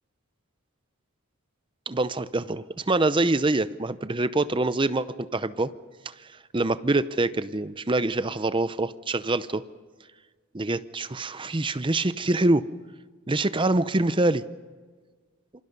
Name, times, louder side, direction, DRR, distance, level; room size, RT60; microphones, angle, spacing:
voice 1, 1.9-5.1 5.3-5.7 6.0-6.1 6.5-9.6 10.5-12.6 13.3-14.4, right 2 dB, 25° right, 13 dB, 0.7 m, -25 dB
27.5 x 25.0 x 5.4 m, 1.5 s
head